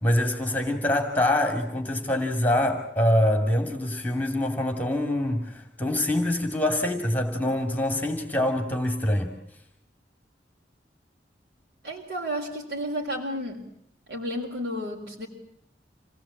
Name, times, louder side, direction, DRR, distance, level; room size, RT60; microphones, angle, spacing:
voice 1, 0.0-9.3, left 1 dB, 10° left, 4 dB, 2.6 m, -25 dB
voice 2, 11.8-13.6 14.1-15.3, equal, 85° right, -1 dB, 4.2 m, -32 dB
27.5 x 18.0 x 8.7 m, 0.76 s
head